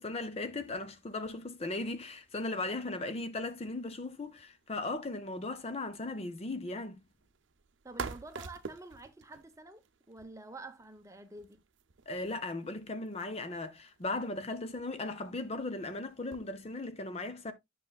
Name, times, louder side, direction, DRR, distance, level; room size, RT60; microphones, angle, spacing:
voice 1, 0.0-7.0 12.1-17.5, left 2 dB, 30° left, 0.6 m, -37 dB
sound 1, 0.6-16.9, right 5 dB, 70° right, 0.6 m, -51 dB
voice 2, 7.8-11.6, right 2 dB, 15° right, 0.9 m, -48 dB
10.0 x 5.9 x 2.3 m
head